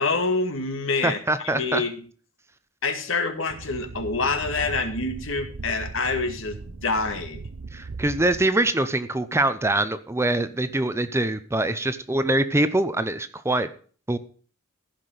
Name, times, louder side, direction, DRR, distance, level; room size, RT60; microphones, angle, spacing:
voice 1, 0.0-1.2 1.5-1.9 2.8-7.4, left 3 dB, 70° left, 6 dB, 2.1 m, -26 dB
voice 2, 1.0-1.8 7.7-13.7 14.1-14.2, right 1 dB, 15° right, 11 dB, 0.7 m, -24 dB
sound 1, 3.5-8.5, right 4 dB, 80° right, 0.7 m, -38 dB
15.0 x 5.9 x 6.6 m, 0.42 s
head